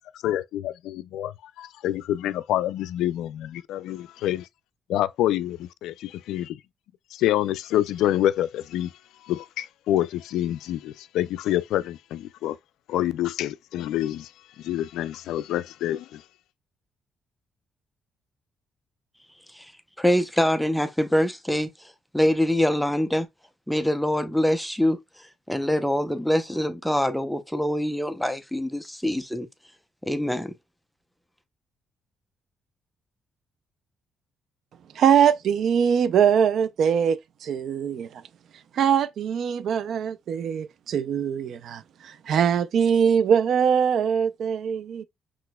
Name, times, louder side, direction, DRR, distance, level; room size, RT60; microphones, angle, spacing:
voice 1, 0.2-4.5 4.9-6.6 7.1-8.9 9.2-12.6 12.9-14.3 14.6-16.2, left 13 dB, 85° left, 0.3 m, -27 dB
voice 2, 20.0-23.3 23.7-25.0 25.5-29.5 30.0-30.5, equal, ahead, 0.6 m, -24 dB
voice 3, 35.0-38.2 38.7-45.0, right 8 dB, 70° right, 0.4 m, -22 dB
5.9 x 3.0 x 2.2 m
cardioid pair, 90°, 0 cm